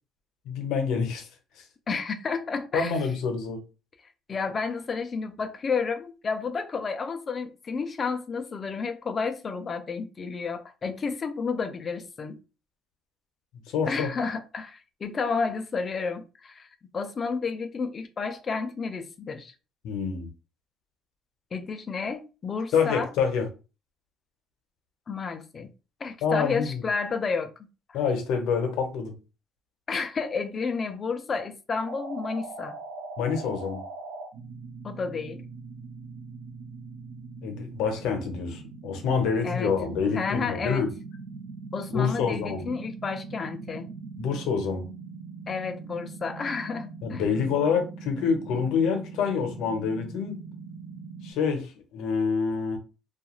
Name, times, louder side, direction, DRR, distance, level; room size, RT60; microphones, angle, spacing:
voice 1, 0.5-1.3 2.7-3.6 13.7-14.1 19.8-20.3 22.7-23.5 26.2-26.8 27.9-29.1 33.2-33.8 37.4-40.9 41.9-42.7 44.2-44.8 47.0-50.4 51.2-52.8, left 6 dB, 65° left, 0.7 m, -27 dB
voice 2, 1.9-3.1 4.0-12.4 13.9-16.7 16.9-19.5 21.5-23.1 25.1-25.7 26.0-27.5 27.9-28.0 29.9-32.8 34.8-35.4 39.4-40.8 41.7-43.9 45.5-47.2, left 5 dB, 25° left, 0.3 m, -31 dB
sound 1, 31.9-51.3, right 4 dB, 65° right, 0.6 m, -41 dB
2.3 x 2.3 x 3.0 m
cardioid pair, 170°, 0 cm